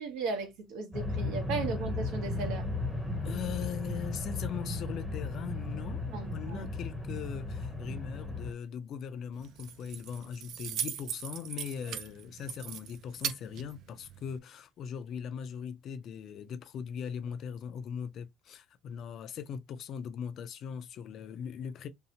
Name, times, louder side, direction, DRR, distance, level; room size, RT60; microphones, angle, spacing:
voice 1, 0.0-2.6 6.1-6.7, right 4 dB, 85° right, 0.9 m, -36 dB
sound 1, 0.9-8.5, left 2 dB, 5° right, 0.7 m, -35 dB
voice 2, 3.2-21.9, left 8 dB, 50° left, 0.4 m, -40 dB
Keys jangling, 9.3-14.4, right 9 dB, 60° right, 0.3 m, -40 dB
2.7 x 2.1 x 2.7 m
cardioid pair, 150°, 0 cm